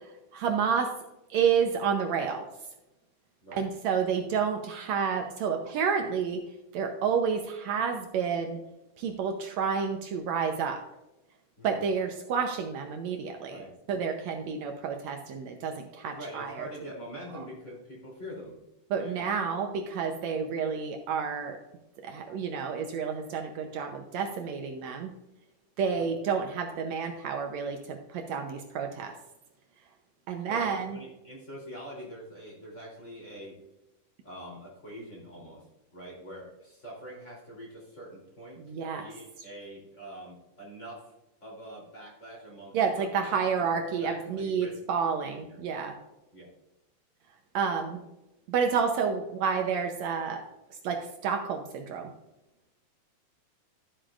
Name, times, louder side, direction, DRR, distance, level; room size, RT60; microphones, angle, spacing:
voice 1, 0.3-0.9 1.3-2.5 3.5-6.4 6.7-8.6 9.0-10.8 11.6-13.6 13.9-16.7 18.9-21.6 22.0-25.1 25.8-29.1 30.3-31.0 38.7-39.1 42.7-46.0 47.5-48.0 48.5-50.4 50.8-52.1, right 6 dB, 70° right, 5 dB, 1.8 m, -30 dB
voice 2, 15.9-18.6 18.9-19.2 25.8-26.1 30.5-33.5 34.2-35.6 35.9-41.1 41.4-44.7 45.3-45.7 46.3-46.5, equal, 20° left, -4 dB, 3.3 m, -45 dB
13.0 x 7.5 x 2.5 m, 0.96 s
omnidirectional pair, 3.7 m